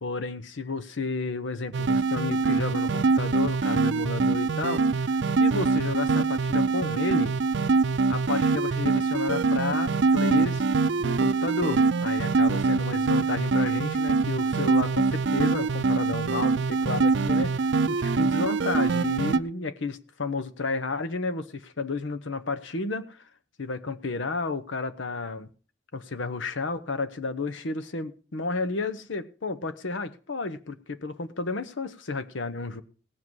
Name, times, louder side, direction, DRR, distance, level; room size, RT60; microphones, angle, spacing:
voice 1, 0.0-5.1 5.4-7.3 8.1-23.2 23.6-25.5 25.9-32.8, left 3 dB, 80° left, 0.9 m, -32 dB
sound 1, 1.7-19.4, right 4 dB, 70° right, 0.5 m, -24 dB
18.0 x 7.6 x 4.6 m
head